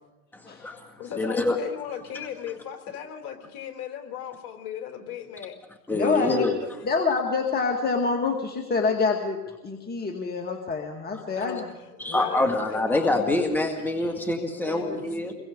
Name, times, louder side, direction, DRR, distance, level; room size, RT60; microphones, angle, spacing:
voice 1, 0.3-0.8 1.2-1.6 5.9-6.6 12.0-15.3, left 2 dB, 5° left, 3 dB, 2.3 m, -25 dB
voice 2, 1.0-5.6 6.0-6.7 11.3-11.7 12.0-13.4 14.6-15.3, left 8 dB, 45° left, 4 dB, 4.0 m, -37 dB
voice 3, 5.9-6.5 6.8-9.4 9.6-11.7 14.0-14.1, left 4 dB, 20° left, 2 dB, 2.2 m, -26 dB
28.5 x 23.0 x 4.0 m, 1.0 s
hypercardioid pair, 105°, 45 cm